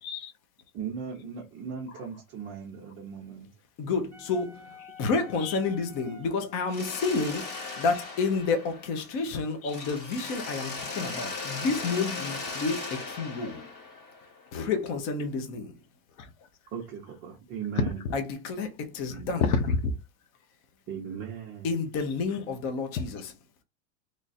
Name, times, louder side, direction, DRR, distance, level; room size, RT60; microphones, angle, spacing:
voice 1, 0.0-0.3 1.9-2.1 4.8-4.9 5.4-5.6 6.6-6.7 7.5-7.6 9.6-9.8 16.2-16.3 17.7-18.2 19.1-19.9 21.9-22.4 23.0-23.1, left 5 dB, 75° left, 0.9 m, -30 dB
voice 2, 0.7-3.5 16.7-18.0 19.1-19.4 20.9-21.8, right 7 dB, 25° right, 0.6 m, -38 dB
voice 3, 3.8-4.7 5.0-13.7 14.5-15.7 18.1-19.4 21.6-23.2, left 4 dB, 30° left, 0.6 m, -30 dB
Wind instrument woodwind instrument, 4.1-8.3, left 3 dB, 10° left, 0.9 m, -50 dB
Mechanisms, 6.7-9.3 9.7-14.5, left 3 dB, 45° left, 1.9 m, -38 dB
3.1 x 2.4 x 4.1 m
supercardioid pair, 165°, 43 cm